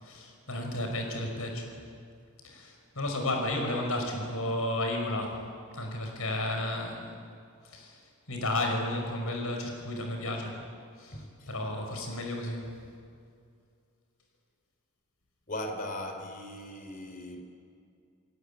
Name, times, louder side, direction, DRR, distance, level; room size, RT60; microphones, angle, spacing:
voice 1, 0.0-1.7 2.4-5.4 5.7-7.2 7.6-8.0 8.3-10.6 11.0-11.2 11.5-12.7, left 1 dB, 70° left, 5.7 m, -32 dB
voice 2, 11.1-11.5 15.5-17.4, left 1 dB, 40° left, 3.3 m, -38 dB
29.5 x 17.0 x 8.6 m
head